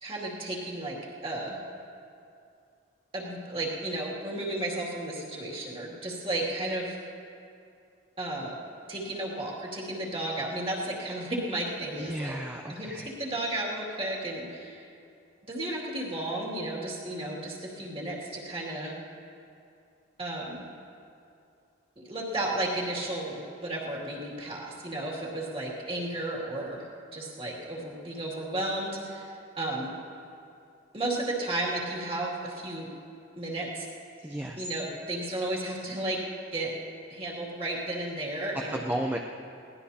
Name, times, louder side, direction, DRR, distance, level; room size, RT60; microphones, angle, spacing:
voice 1, 0.0-1.0 1.2-1.6 3.1-7.0 8.2-8.6 8.9-12.4 12.7-14.8 15.5-19.0 20.2-20.6 22.0-26.9 27.1-29.9 30.9-32.9 33.4-33.9 34.6-36.2 36.5-36.7 37.1-38.9, right 1 dB, 25° right, -4 dB, 2.5 m, -33 dB
voice 2, 12.0-13.1 34.2-34.7 38.7-39.2, right 1 dB, 10° right, 1 dB, 0.6 m, -33 dB
22.0 x 18.0 x 2.9 m, 2.6 s
head